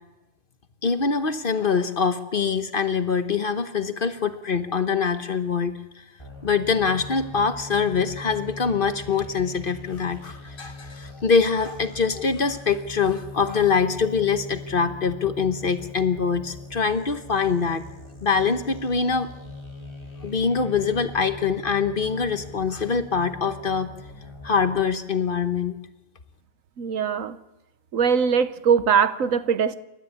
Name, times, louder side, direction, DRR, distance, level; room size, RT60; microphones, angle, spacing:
voice 1, 0.8-5.7 6.4-17.9 18.2-19.3 20.2-23.9 24.4-25.8, left 5 dB, 45° left, 9 dB, 1.3 m, -24 dB
sound 1, 6.2-24.8, left 2 dB, 20° left, 2.6 m, -41 dB
voice 2, 26.8-27.4 27.9-29.8, right 6 dB, 85° right, 12 dB, 1.4 m, -21 dB
28.0 x 13.0 x 8.5 m, 0.97 s
omnidirectional pair, 1.3 m